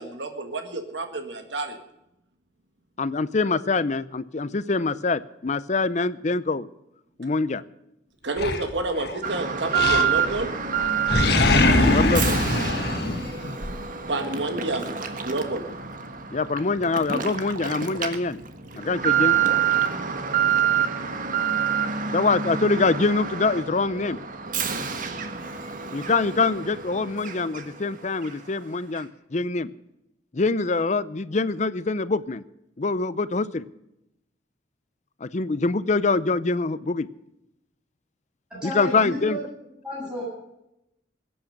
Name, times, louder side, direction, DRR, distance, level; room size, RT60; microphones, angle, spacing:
voice 1, 0.0-1.8 8.2-10.5 14.1-14.9 15.2-15.7, right 2 dB, 75° right, 6 dB, 1.8 m, -29 dB
voice 2, 3.0-6.7 7.2-7.6 11.9-12.3 16.3-18.4 18.7-19.4 22.1-24.2 25.9-29.7 30.3-32.4 32.8-33.7 35.2-37.1 38.6-39.4, left 3 dB, 40° left, 16 dB, 0.6 m, -24 dB
Animal, 8.4-9.2 9.7-10.5 10.8-13.7, left 2 dB, 60° left, 1.7 m, -22 dB
Alarm, 9.2-27.9 28.2-28.3 28.9-29.0, right 7 dB, 45° right, 1.4 m, -27 dB
voice 3, 38.5-39.4 39.8-40.2, left 1 dB, 5° right, -7 dB, 7.8 m, -32 dB
21.0 x 8.7 x 6.6 m, 0.85 s
head